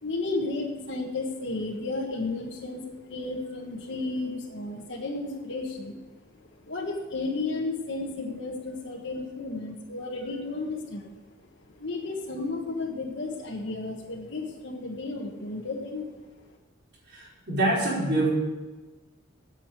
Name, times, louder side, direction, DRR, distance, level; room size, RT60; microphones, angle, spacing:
voice 1, 0.0-6.0 6.4-11.2 11.6-16.1 16.5-16.6, left 3 dB, 60° left, -1 dB, 1.4 m, -33 dB
voice 2, 17.1-18.3, right 2 dB, 55° right, -5 dB, 4.8 m, -25 dB
9.0 x 8.4 x 9.0 m, 1.2 s
head